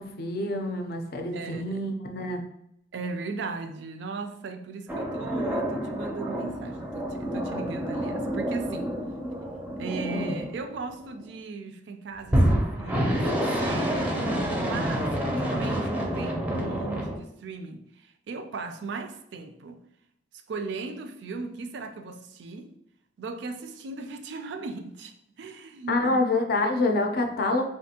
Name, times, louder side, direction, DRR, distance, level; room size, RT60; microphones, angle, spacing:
voice 1, 0.0-2.4 10.1-10.4 25.9-27.6, left 2 dB, 55° left, 0.5 m, -27 dB
voice 2, 1.3-1.8 2.9-9.0 9.8-19.8 20.5-22.7 23.2-26.2 26.6-26.7, right 4 dB, 65° right, 0.4 m, -37 dB
sound 1, 4.9-11.2 12.3-17.2, equal, 10° right, 0.5 m, -28 dB
3.4 x 2.5 x 2.7 m
head